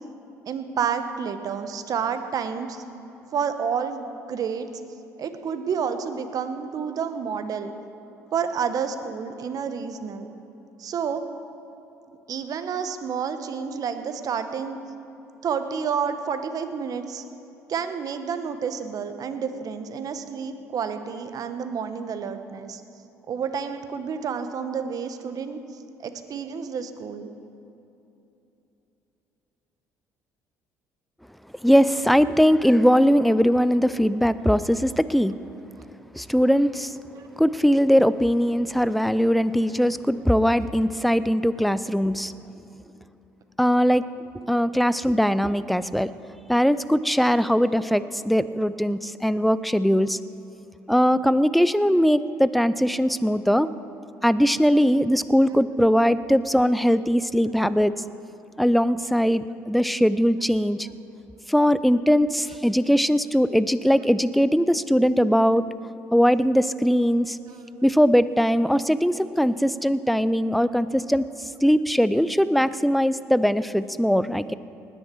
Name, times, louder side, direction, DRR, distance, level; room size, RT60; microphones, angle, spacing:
voice 1, 0.5-2.8 3.3-4.7 5.2-7.7 8.3-10.3 10.8-11.3 12.3-14.8 15.4-17.2 17.7-22.8 23.3-25.6 26.0-27.3 35.8-35.9 37.2-37.3 67.7-67.8, right 6 dB, 50° right, 9 dB, 1.1 m, -29 dB
voice 2, 31.6-35.3 36.1-36.9 37.4-42.3 43.6-44.0 44.5-46.1 46.5-50.2 50.9-53.7 54.2-57.9 58.6-60.9 61.5-65.6 66.1-67.4 67.8-71.3 71.6-74.5, equal, ahead, 15 dB, 0.5 m, -20 dB
19.5 x 10.0 x 4.6 m, 2.9 s
hypercardioid pair, 65°, 8 cm